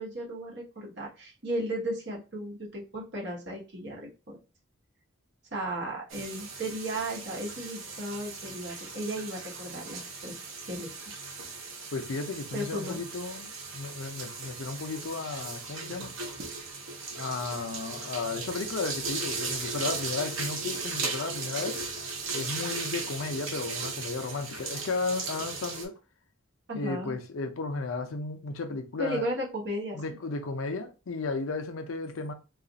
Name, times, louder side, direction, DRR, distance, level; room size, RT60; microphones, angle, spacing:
voice 1, 0.0-4.4 5.5-10.3 10.7-11.2 12.5-13.0 26.7-27.2 29.0-30.0, right 1 dB, 55° right, 1.0 m, -35 dB
sound 1, 6.1-25.8, right 4 dB, 75° right, 0.8 m, -37 dB
voice 2, 11.9-16.1 17.1-21.8 22.3-25.9 26.7-29.3 29.9-32.3, left 3 dB, 80° left, 0.5 m, -34 dB
2.5 x 2.4 x 3.9 m
head